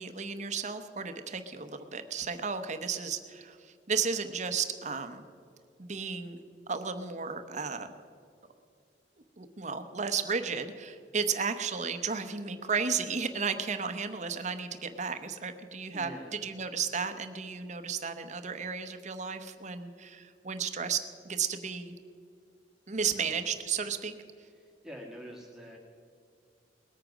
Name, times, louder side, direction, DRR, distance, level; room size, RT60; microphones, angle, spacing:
voice 1, 0.0-3.6 3.9-5.2 5.8-6.4 6.7-7.9 9.4-16.1 16.4-21.0 21.2-21.9 22.9-24.1, right 6 dB, 40° right, 9 dB, 0.9 m, -33 dB
voice 2, 15.9-16.5 24.4-25.8, equal, 5° right, -3 dB, 1.7 m, -46 dB
20.0 x 8.9 x 6.1 m, 2.3 s
head